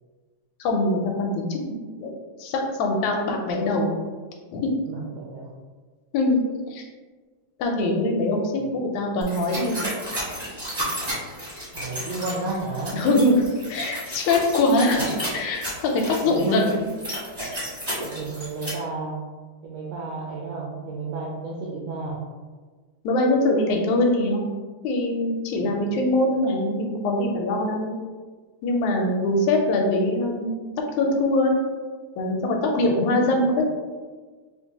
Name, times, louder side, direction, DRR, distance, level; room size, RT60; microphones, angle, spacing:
voice 1, 0.6-1.6 2.0-2.1 2.4-3.9 4.5-4.7 6.1-6.4 6.7-6.8 7.6-9.8 12.9-13.4 13.7-16.9 23.0-24.5 24.8-27.9 28.6-30.6 31.0-31.6 32.2-33.6, left 2 dB, 80° left, 1 dB, 1.9 m, -23 dB
voice 2, 4.9-5.5 8.6-8.7 11.7-13.0 16.2-16.7 18.0-19.2 19.6-22.2 25.6-25.7, right 3 dB, 80° right, -3 dB, 1.4 m, -32 dB
sound 1, 9.2-18.7, equal, 50° right, 0.3 m, -32 dB
5.0 x 2.6 x 2.8 m, 1.4 s
omnidirectional pair, 3.4 m